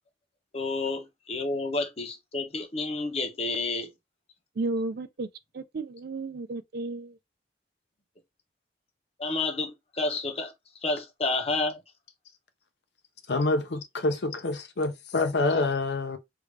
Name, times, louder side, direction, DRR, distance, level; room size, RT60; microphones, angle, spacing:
voice 1, 0.5-3.9 9.2-10.5 10.8-11.8, left 3 dB, 35° left, 0.8 m, -30 dB
voice 2, 4.6-5.3 5.5-7.2, right 3 dB, 55° right, 0.4 m, -33 dB
voice 3, 13.3-16.2, left 3 dB, 65° left, 0.6 m, -27 dB
3.3 x 2.4 x 3.1 m
head